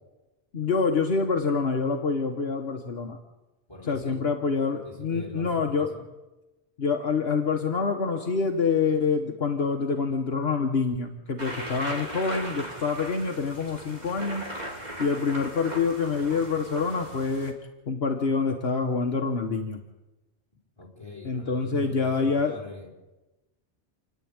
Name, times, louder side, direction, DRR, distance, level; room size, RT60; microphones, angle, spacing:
voice 1, 0.5-3.2 3.9-5.9 6.8-14.4 15.0-17.5 17.9-19.8 21.2-22.6, left 5 dB, 65° left, 3 dB, 1.5 m, -26 dB
voice 2, 3.7-4.2 4.8-6.0 20.8-22.9, left 3 dB, 25° left, -3 dB, 5.2 m, -43 dB
sound 1, 11.4-17.5, right 1 dB, 40° right, 2.9 m, -38 dB
29.0 x 10.5 x 8.7 m, 1.1 s
omnidirectional pair, 1.1 m